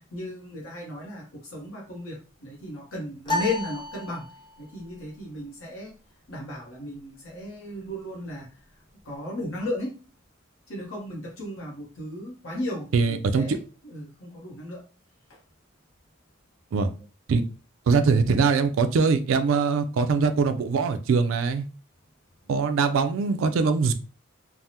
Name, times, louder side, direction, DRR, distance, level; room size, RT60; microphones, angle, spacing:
voice 1, 0.1-4.3 4.6-5.9 6.3-8.5 9.0-9.9 10.7-14.8, left 1 dB, 70° left, 0.9 m, -35 dB
sound 1, 3.2-4.7, left 2 dB, 20° left, 0.6 m, -31 dB
voice 2, 12.9-13.6 16.7-16.9 17.3-17.4 17.9-21.6 22.5-23.9, right 5 dB, 65° right, 0.3 m, -22 dB
3.4 x 2.0 x 2.7 m
head